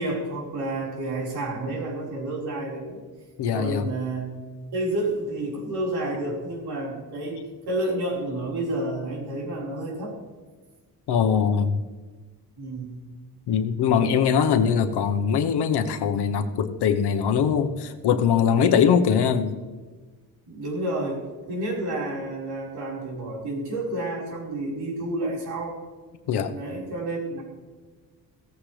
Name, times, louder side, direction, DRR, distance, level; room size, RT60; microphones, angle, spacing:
voice 1, 0.0-3.0 3.5-4.3 4.7-10.1 12.6-13.0 20.5-25.8 26.5-27.4, right 1 dB, 75° right, -3 dB, 4.7 m, -30 dB
voice 2, 3.4-3.9 11.1-11.8 13.5-19.6 26.3-26.5, left 7 dB, 90° left, 8 dB, 1.1 m, -22 dB
16.5 x 15.0 x 3.3 m, 1.4 s
wide cardioid pair, 155°, 39 cm